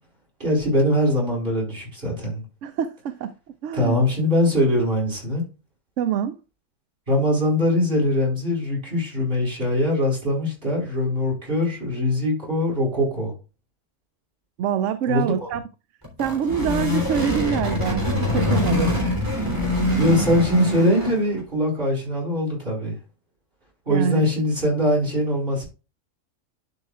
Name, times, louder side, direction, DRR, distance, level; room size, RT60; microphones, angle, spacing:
voice 1, 0.4-2.4 3.7-5.4 7.1-13.3 15.1-15.5 20.0-23.0 23.9-25.7, left 1 dB, 45° right, 5.1 m, -22 dB
voice 2, 2.6-3.3 3.6-4.0 6.0-6.4 14.6-15.6 16.2-19.0 23.9-24.3, right 8 dB, 75° right, 0.9 m, -25 dB
sound 1, 16.0-21.3, left 1 dB, 15° right, 3.2 m, -24 dB
12.0 x 5.5 x 2.4 m
omnidirectional pair, 1.3 m